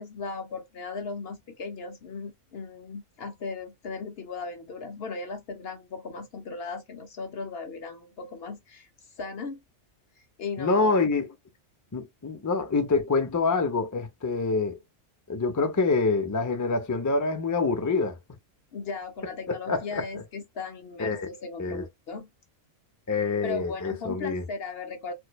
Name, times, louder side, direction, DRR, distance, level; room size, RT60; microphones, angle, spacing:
voice 1, 0.0-8.9 9.2-9.6 10.4-11.0 18.7-22.3 23.4-25.1, left 4 dB, 60° left, 0.7 m, -37 dB
voice 2, 10.6-11.3 11.9-14.8 15.3-18.2 19.5-20.2 21.0-21.3 21.6-21.8 23.1-24.4, left 4 dB, 25° left, 0.4 m, -26 dB
4.6 x 2.1 x 2.2 m
omnidirectional pair, 1.4 m